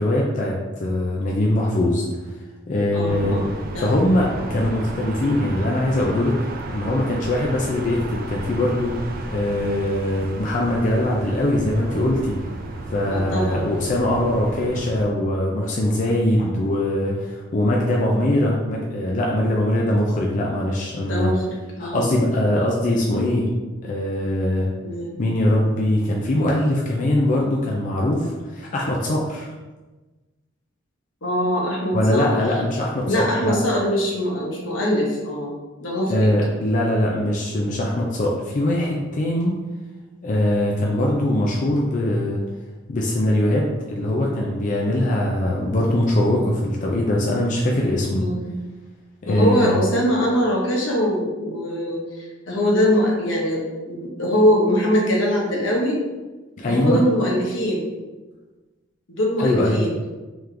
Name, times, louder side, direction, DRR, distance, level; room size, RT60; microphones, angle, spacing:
voice 1, 0.0-2.0 2.7-3.4 3.8-6.3 6.7-9.0 9.3-12.4 12.9-21.3 21.8-23.5 23.8-24.7 25.2-29.5 31.9-33.6 36.1-39.5 40.2-42.4 42.9-48.2 49.2-49.7 56.6-57.0 59.4-59.8, left 1 dB, 40° left, -2 dB, 0.4 m, -22 dB
voice 2, 2.9-3.9 13.1-13.7 21.1-21.4 21.8-22.1 24.8-25.2 31.2-32.4 33.0-35.5 35.8-36.3 48.1-48.5 49.2-56.0 56.7-57.9 59.1-59.9, equal, 75° left, -3 dB, 1.0 m, -22 dB
sound 1, 3.1-15.0, right 2 dB, 50° right, 0.4 m, -33 dB
3.7 x 3.1 x 3.3 m, 1.2 s
head